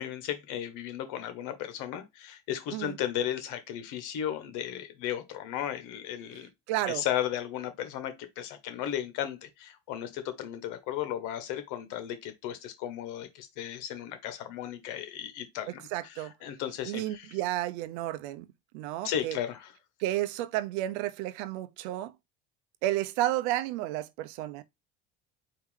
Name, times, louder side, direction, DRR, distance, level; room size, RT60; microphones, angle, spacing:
voice 1, 0.0-6.5 6.9-17.4 19.0-19.7, left 10 dB, 70° left, 1.5 m, -35 dB
voice 2, 6.7-7.0 15.9-16.3 16.8-18.5 18.7-19.4 20.0-22.1 22.8-24.6, right 14 dB, 85° right, 0.7 m, -31 dB
4.6 x 2.9 x 3.6 m
supercardioid pair, 105°, 32 cm